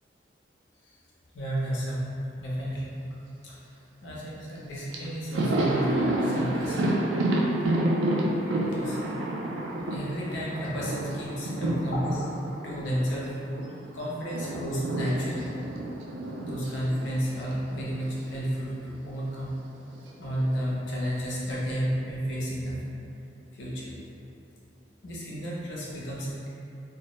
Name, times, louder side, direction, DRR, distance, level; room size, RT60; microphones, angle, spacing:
voice 1, 1.3-2.1 2.4-3.0 3.4-6.9 8.6-9.2 9.8-12.3 12.6-13.4 13.9-15.6 16.4-19.5 20.2-22.8 23.5-23.9 25.0-26.5, equal, 75° left, -5 dB, 0.5 m, -32 dB
Thunder, 4.6-4.7 4.9-13.7 14.0-18.3 18.6-18.7 19.9-20.6, right 1 dB, 80° right, 0.3 m, -29 dB
2.1 x 2.0 x 2.9 m, 2.6 s
head